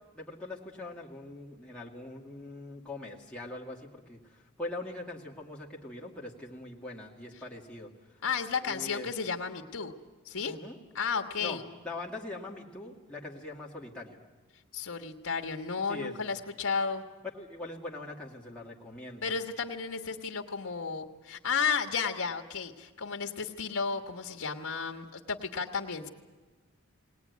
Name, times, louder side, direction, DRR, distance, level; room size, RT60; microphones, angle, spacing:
voice 1, 0.1-7.9 8.6-9.1 10.4-10.8 11.4-11.6 11.8-14.2 15.9-16.4 17.3-19.3, left 2 dB, 5° left, -4 dB, 2.1 m, -42 dB
voice 2, 8.2-9.9 10.2-10.6 10.9-11.6 14.7-17.0 19.2-26.1, left 5 dB, 80° left, 4 dB, 1.4 m, -33 dB
20.5 x 18.5 x 9.4 m, 1.3 s
head